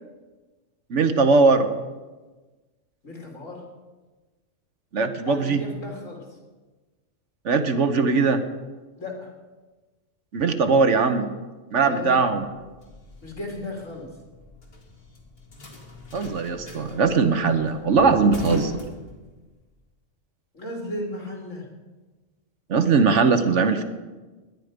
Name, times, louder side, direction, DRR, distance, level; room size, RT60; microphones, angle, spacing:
voice 1, 0.9-1.7 4.9-5.6 7.4-8.4 10.3-11.3 11.7-12.4 16.1-18.8 22.7-23.8, right 4 dB, 65° right, 9 dB, 1.3 m, -20 dB
voice 2, 3.0-3.6 5.3-6.2 9.0-9.3 11.8-12.2 13.2-14.1 20.5-21.7, left 2 dB, 75° left, 0 dB, 3.5 m, -34 dB
sound 1, 12.3-19.7, left 3 dB, 50° left, 2.4 m, -39 dB
18.5 x 10.5 x 5.1 m, 1.2 s
omnidirectional pair, 1.3 m